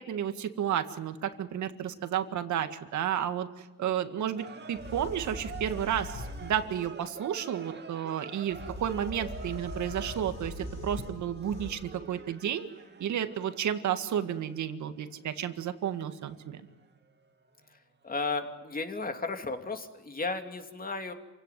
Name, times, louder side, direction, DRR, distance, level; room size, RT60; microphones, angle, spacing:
voice 1, 0.0-12.7 13.0-16.6, right 9 dB, 70° right, 9 dB, 1.9 m, -32 dB
voice 2, 3.8-4.2 17.7-21.1, left 3 dB, 30° left, 6 dB, 2.9 m, -35 dB
sound 1, 4.4-17.8 18.0-18.2, right 4 dB, 35° right, 2.4 m, -47 dB
sound 2, 4.5-4.6 4.7-6.7 8.5-11.7, left 2 dB, 70° left, 6.7 m, -41 dB
27.5 x 17.0 x 9.5 m, 1.2 s
cardioid pair, 90°, 30 cm